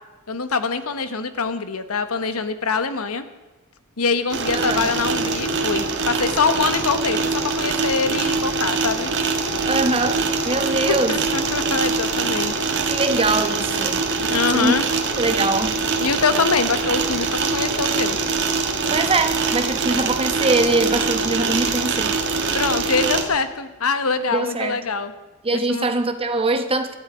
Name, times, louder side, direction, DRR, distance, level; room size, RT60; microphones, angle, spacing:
voice 1, 0.3-3.2 4.0-9.1 10.9-12.7 14.3-14.9 16.0-18.2 22.5-25.1 25.5-25.9, left 4 dB, 80° left, 11 dB, 1.1 m, -24 dB
sound 1, 4.3-23.2, right 4 dB, 55° right, 1.8 m, -23 dB
voice 2, 4.5-4.9 9.7-11.2 12.8-14.0 14.5-14.8 15.2-15.8 18.9-22.2 24.3-24.8 25.4-27.0, right 2 dB, 25° right, 8 dB, 1.0 m, -22 dB
19.5 x 13.0 x 5.0 m, 1.2 s
head